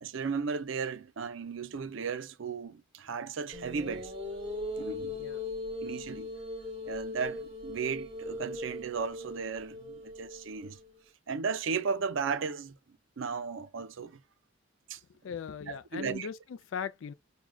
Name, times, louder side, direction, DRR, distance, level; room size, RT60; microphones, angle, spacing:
voice 1, 0.0-4.1 4.8-5.2 5.8-6.3 6.9-10.8 11.3-14.2 14.9-15.0 15.7-16.3, right 5 dB, 65° right, 0.5 m, -35 dB
sound 1, 3.5-10.9, left 2 dB, 25° right, 0.9 m, -39 dB
voice 2, 15.1-16.4 16.7-17.1, left 7 dB, 65° left, 0.4 m, -39 dB
6.1 x 2.2 x 2.2 m
head